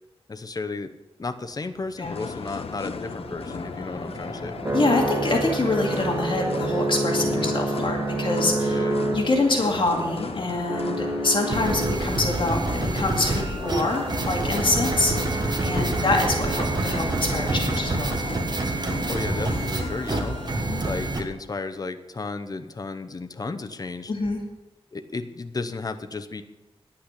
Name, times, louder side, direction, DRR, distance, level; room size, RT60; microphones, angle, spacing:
voice 1, 0.3-0.9 1.2-4.6 7.3-7.5 8.7-9.0 15.7-16.0 19.1-20.5 20.8-24.1 24.9-26.4, left 3 dB, 35° left, 8 dB, 0.8 m, -33 dB
sound 1, 1.8-18.1, right 2 dB, 25° right, 1.9 m, -30 dB
sound 2, 2.0-20.6, left 5 dB, 70° left, 0.8 m, -37 dB
voice 2, 4.7-8.8 9.1-18.1 20.6-20.8 24.1-24.4, left 2 dB, 55° left, 1 dB, 2.3 m, -25 dB
sound 3, 11.5-21.2, right 2 dB, 45° right, 1.5 m, -27 dB
10.5 x 8.6 x 8.1 m, 1.1 s
wide cardioid pair, 110°, 10 cm